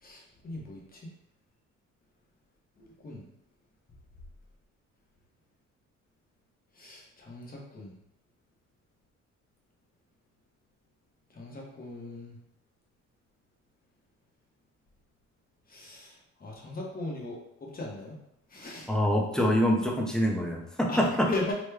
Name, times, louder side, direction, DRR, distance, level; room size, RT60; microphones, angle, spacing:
voice 1, 0.0-1.1 2.8-3.2 6.8-7.9 11.3-12.4 15.7-18.2 18.5-18.9 20.9-21.5, left 2 dB, 30° left, -2 dB, 1.0 m, -38 dB
voice 2, 18.9-21.3, equal, ahead, 0 dB, 0.6 m, -25 dB
3.1 x 2.2 x 3.3 m, 0.78 s
cardioid pair, 90°, 30 cm